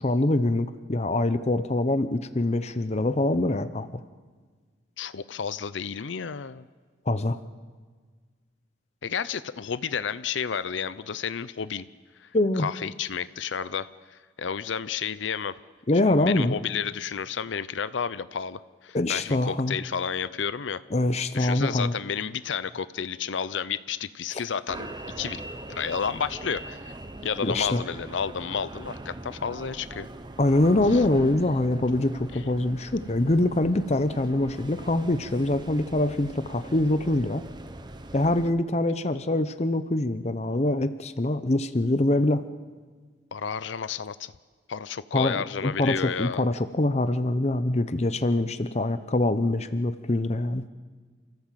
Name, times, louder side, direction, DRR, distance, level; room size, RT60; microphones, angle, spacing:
voice 1, 0.0-3.9 7.1-7.4 12.3-12.7 15.9-16.6 18.9-19.8 20.9-21.9 24.3-24.4 27.4-27.8 30.4-37.4 38.1-42.4 45.1-50.6, left 2 dB, 35° left, 11 dB, 0.7 m, -24 dB
voice 2, 5.0-6.7 9.0-11.9 12.2-12.3 12.6-15.6 16.0-20.8 21.3-24.9 25.2-25.4 25.7-26.9 27.2-30.1 30.9-31.0 32.3-32.4 43.3-44.3 44.7-46.5, left 7 dB, 80° left, 15 dB, 0.6 m, -31 dB
sound 1, 24.7-38.5, right 1 dB, 25° right, 0.9 m, -41 dB
29.0 x 14.5 x 7.5 m, 1.5 s
head